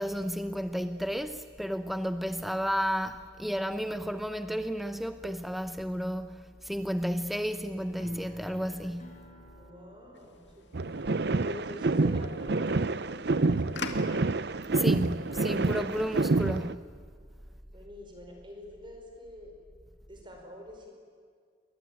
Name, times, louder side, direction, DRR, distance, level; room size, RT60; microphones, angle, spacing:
voice 1, 0.0-9.3 14.7-16.9, equal, ahead, 0.7 m, -32 dB
sound 1, 8.0-13.0, equal, 35° left, 4.4 m, -54 dB
voice 2, 9.6-14.2 17.7-19.5 20.1-20.9, left 1 dB, 25° right, 4.9 m, -46 dB
sound 2, 10.1-16.7, left 4 dB, 65° left, 2.3 m, -46 dB
sound 3, 10.7-16.7, right 3 dB, 55° right, 0.7 m, -28 dB
29.0 x 22.5 x 9.0 m
head